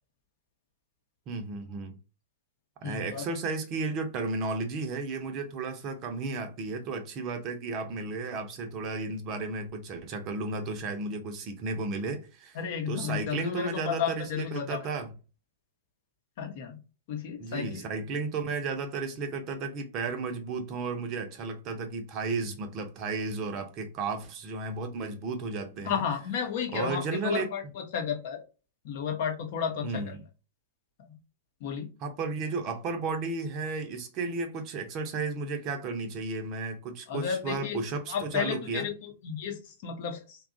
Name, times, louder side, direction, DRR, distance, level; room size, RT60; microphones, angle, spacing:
voice 1, 1.3-2.0 2.8-12.6 12.9-15.1 17.4-26.0 26.7-27.5 29.8-30.2 32.0-38.9, right 3 dB, 40° right, 0.6 m, -33 dB
voice 2, 2.8-3.2 12.5-14.8 16.4-16.8 17.1-17.8 25.8-28.4 28.8-30.0 31.1-31.2 31.6-31.9 37.1-37.8 38.1-40.4, left 7 dB, 55° left, 0.8 m, -32 dB
2.8 x 2.3 x 2.5 m
figure-of-eight pair, 105°, 0 cm